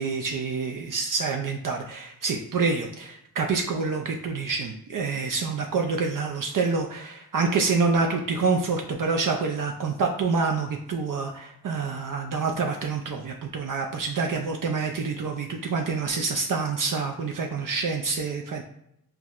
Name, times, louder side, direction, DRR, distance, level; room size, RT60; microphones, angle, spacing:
voice 1, 0.0-18.6, right 4 dB, 55° right, 2 dB, 0.5 m, -27 dB
5.8 x 2.1 x 2.4 m, 0.76 s
cardioid pair, 65°, 38 cm